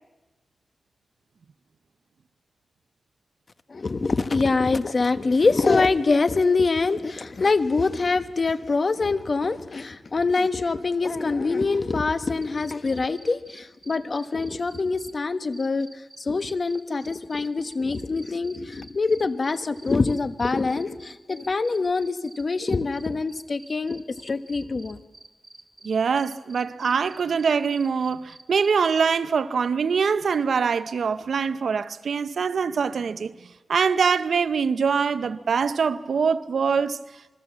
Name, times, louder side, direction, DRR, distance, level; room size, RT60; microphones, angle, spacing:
voice 1, 3.7-15.9 16.2-25.0, left 3 dB, 45° left, 1.2 m, -24 dB
sound 1, 12.4-15.1 15.5-29.0, right 2 dB, 25° right, 2.7 m, -48 dB
voice 2, 25.8-33.3 33.7-37.0, right 6 dB, 75° right, 0.8 m, -23 dB
27.5 x 22.5 x 7.5 m
wide cardioid pair, 105°, 0 cm